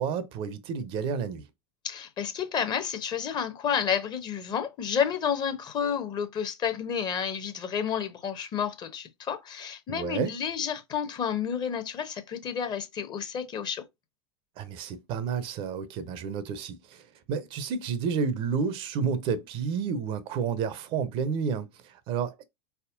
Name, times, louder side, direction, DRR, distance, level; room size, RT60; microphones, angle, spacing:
voice 1, 0.0-1.5 9.9-10.3 14.6-22.4, right 6 dB, 40° right, 0.6 m, -30 dB
voice 2, 1.8-13.8, left 7 dB, 30° left, 0.8 m, -30 dB
4.0 x 3.5 x 2.5 m
figure-of-eight pair, 80°, 14 cm